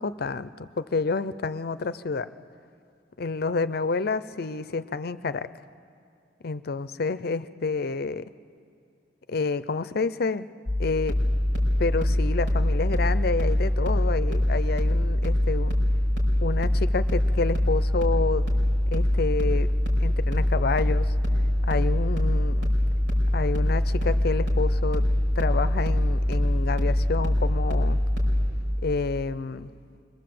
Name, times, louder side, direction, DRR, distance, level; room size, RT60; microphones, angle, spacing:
voice 1, 0.0-2.3 3.2-5.5 6.4-8.2 9.3-10.5 10.8-11.2 11.8-15.7 16.4-18.4 18.9-19.7 20.0-21.1 21.6-22.7 23.3-25.1 25.4-28.0 28.8-29.7, left 4 dB, 55° left, 14 dB, 0.6 m, -29 dB
sound 1, 10.7-28.5, left 1 dB, 70° right, 5.1 m, -23 dB
26.0 x 21.5 x 7.8 m, 2.4 s
head